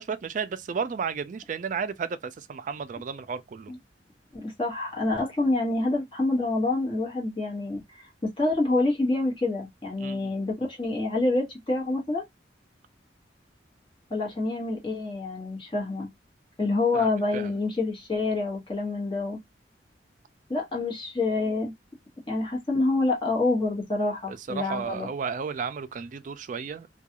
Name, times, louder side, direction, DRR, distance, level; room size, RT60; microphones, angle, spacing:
voice 1, 0.0-3.7 10.0-10.3 16.9-17.1 17.3-17.5 24.3-27.0, right 6 dB, 45° right, 0.3 m, -33 dB
voice 2, 4.3-12.2 14.1-16.1 16.6-19.4 20.5-21.7 22.3-25.1, left 2 dB, 30° left, 1.1 m, -27 dB
2.4 x 2.3 x 2.8 m
head